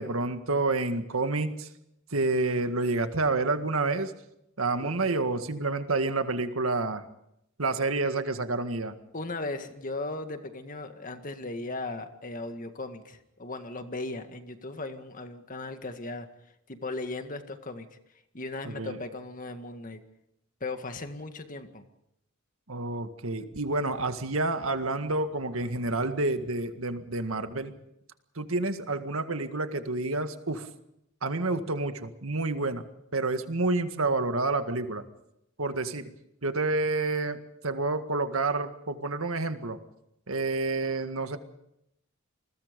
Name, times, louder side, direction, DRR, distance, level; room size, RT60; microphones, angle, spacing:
voice 1, 0.0-1.7 2.1-4.1 4.6-7.0 7.6-8.9 18.6-19.0 22.7-27.7 28.4-30.7 31.2-32.8 33.1-35.0 35.6-36.1 36.4-39.8 40.3-41.4, right 3 dB, 85° right, 8 dB, 1.9 m, -29 dB
voice 2, 9.1-16.3 16.7-17.9 18.3-20.0 20.6-21.8, left 2 dB, 40° left, 8 dB, 1.8 m, -37 dB
28.0 x 21.0 x 5.3 m, 0.79 s
head